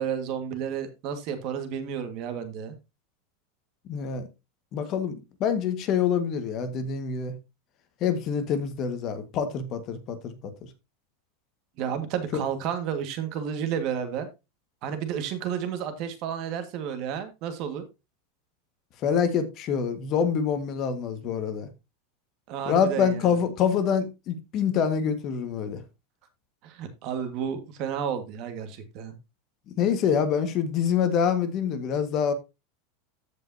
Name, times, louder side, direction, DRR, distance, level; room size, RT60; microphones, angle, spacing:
voice 1, 0.0-2.7 11.8-14.3 14.8-17.8 22.5-23.3 26.6-29.2, right 8 dB, 45° right, 1.7 m, -31 dB
voice 2, 3.9-4.3 4.7-7.3 8.0-10.5 12.3-12.4 19.0-21.7 22.6-25.8 29.7-32.3, left 7 dB, 40° left, 1.6 m, -26 dB
14.5 x 5.3 x 2.7 m
supercardioid pair, 145°, 0 cm